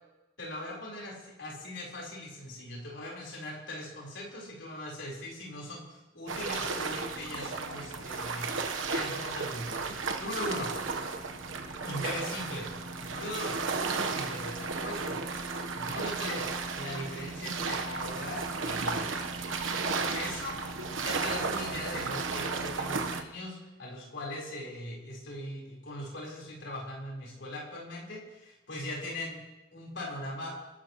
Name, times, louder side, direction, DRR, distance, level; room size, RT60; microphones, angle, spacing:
voice 1, 0.4-10.7 11.8-12.7 13.0-13.6 14.1-15.2 15.8-19.3 19.9-20.5 21.0-29.4 29.7-30.6, left 1 dB, 70° left, -3 dB, 4.2 m, -40 dB
sound 1, 6.3-23.2, right 4 dB, 90° right, 1.1 m, -34 dB
25.0 x 12.0 x 3.1 m, 1.0 s
head